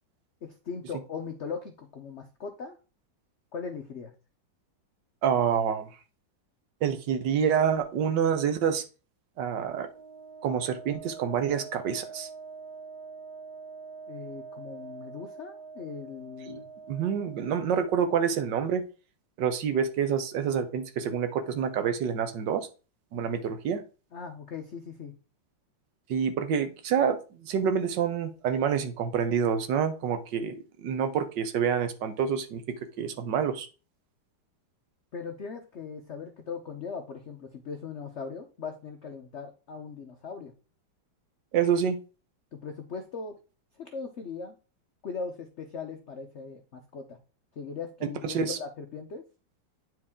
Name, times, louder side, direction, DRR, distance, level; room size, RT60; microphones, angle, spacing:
voice 1, 0.4-2.8 3.5-4.1 14.1-16.6 24.1-25.1 35.1-40.5 42.5-43.3 43.8-44.6 45.0-47.2 47.6-49.2, left 5 dB, 75° left, 5 dB, 0.6 m, -39 dB
voice 2, 5.2-5.9 6.8-8.8 9.4-9.9 10.4-12.3 16.5-16.6 16.9-18.8 19.4-22.7 23.1-23.8 26.1-32.6 33.0-33.7 41.5-42.0 48.2-48.6, right 7 dB, 70° right, 9 dB, 1.4 m, -27 dB
Wind instrument woodwind instrument, 9.8-17.7, right 5 dB, 90° right, 2.0 m, -45 dB
8.9 x 4.6 x 3.6 m, 0.34 s
omnidirectional pair, 2.1 m